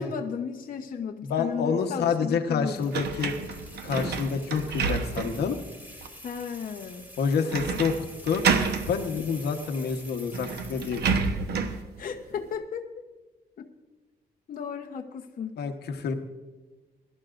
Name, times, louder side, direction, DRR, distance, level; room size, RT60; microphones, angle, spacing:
voice 1, 0.0-2.9 6.2-7.1 12.0-12.9 13.6-13.7 14.5-15.6, left 6 dB, 55° left, 2 dB, 1.0 m, -34 dB
voice 2, 1.2-3.3 3.8-5.6 7.2-7.9 8.2-8.4 8.9-11.2 15.6-16.1, left 6 dB, 85° left, 4 dB, 1.2 m, -28 dB
sound 1, 2.7-11.4, left 1 dB, 10° right, 3.1 m, -48 dB
sound 2, 2.9-5.5 6.0-6.1 7.5-8.0 8.3-8.9 9.9-10.0 10.3-11.8, right 5 dB, 85° right, 1.0 m, -28 dB
22.5 x 12.0 x 2.6 m, 1.3 s
cardioid pair, 120°, 16 cm